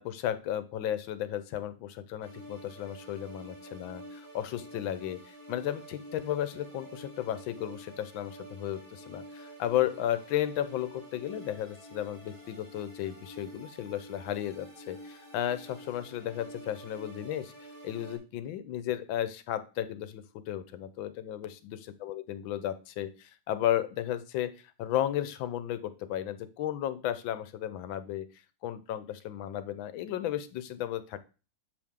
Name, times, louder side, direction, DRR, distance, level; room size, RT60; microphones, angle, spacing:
voice 1, 0.0-17.5 17.8-24.5 24.8-28.3 28.6-31.2, left 11 dB, 80° left, 13 dB, 1.4 m, -34 dB
sound 1, 2.2-18.2, right 1 dB, 25° right, 2.8 m, -48 dB
7.3 x 4.9 x 3.6 m, 0.33 s
omnidirectional pair, 2.1 m